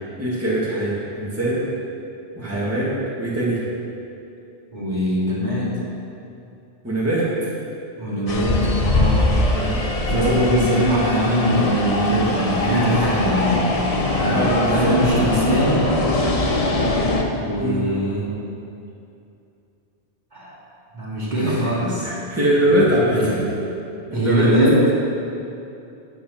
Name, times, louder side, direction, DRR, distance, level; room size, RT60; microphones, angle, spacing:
voice 1, 0.2-1.7 2.4-3.6 6.8-7.5 9.5-10.8 14.3-15.0 17.6-17.9 21.4-21.7 22.0-23.7 24.1-24.5, right 1 dB, 15° right, -8 dB, 1.9 m, -22 dB
voice 2, 4.7-5.7 8.0-9.3 10.0-13.7 14.2-15.9 17.4-18.2 20.3-20.6 20.9-22.1 22.7-22.8 23.1-23.4 24.1-24.8, equal, 40° right, -7 dB, 2.6 m, -22 dB
sound 1, 8.3-17.2, left 2 dB, 35° left, 0.9 m, -22 dB
10.0 x 7.6 x 5.9 m, 2.7 s
omnidirectional pair, 1.2 m